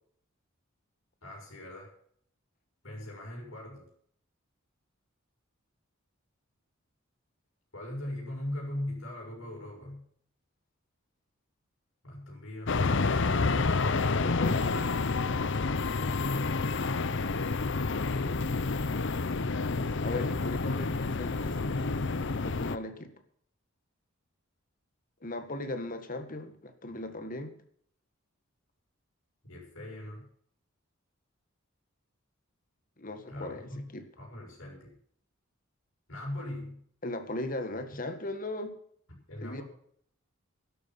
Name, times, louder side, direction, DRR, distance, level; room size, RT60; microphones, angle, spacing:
voice 1, 1.2-1.9 2.8-3.9 7.7-10.0 12.0-14.3 29.5-30.3 33.3-33.9 34.2-35.0 36.1-36.8 39.1-39.6, left 1 dB, 75° left, -2 dB, 6.5 m, -40 dB
sound 1, 12.7-22.8, left 3 dB, 60° left, 0.8 m, -29 dB
voice 2, 14.2-15.0 18.1-18.6 20.0-22.0 22.4-23.2 25.2-27.6 33.0-34.1 37.0-38.8 39.4-39.6, left 2 dB, 40° left, 8 dB, 1.8 m, -38 dB
12.0 x 12.0 x 5.9 m, 0.63 s
head